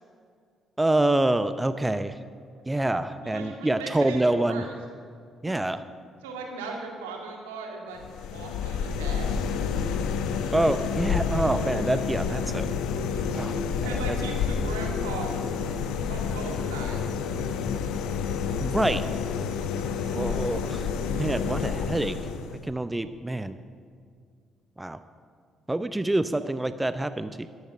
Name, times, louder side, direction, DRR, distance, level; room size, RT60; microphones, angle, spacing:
voice 1, 0.8-2.2 2.7-4.7 5.4-5.8 10.5-12.7 13.3-14.2 18.6-19.0 20.2-22.2 22.6-23.6 24.8-25.0 25.7-27.5, right 1 dB, 15° right, 12 dB, 0.6 m, -26 dB
voice 2, 3.2-4.7 5.4-5.6 6.2-8.0 8.3-9.3 13.8-15.3 16.1-17.0, right 4 dB, 85° right, 1 dB, 2.1 m, -38 dB
sound 1, 8.0-22.6, left 6 dB, 70° left, 0.9 m, -29 dB
13.0 x 10.5 x 6.3 m, 2.2 s
hypercardioid pair, 45°, 0 cm